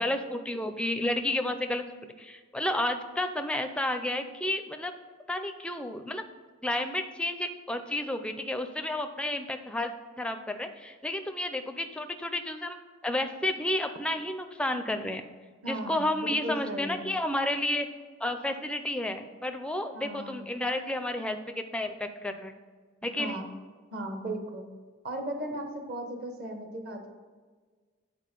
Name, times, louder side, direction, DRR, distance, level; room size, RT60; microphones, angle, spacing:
voice 1, 0.0-4.9 5.3-6.2 6.6-9.9 10.2-12.8 13.0-15.2 15.6-17.9 18.2-22.5 23.0-23.4, left 1 dB, 5° left, 7 dB, 0.4 m, -31 dB
voice 2, 15.6-17.0 19.9-20.5 23.2-23.5 23.9-24.7 25.0-27.1, right 1 dB, 50° right, 4 dB, 1.0 m, -36 dB
9.4 x 4.3 x 5.3 m, 1.5 s
head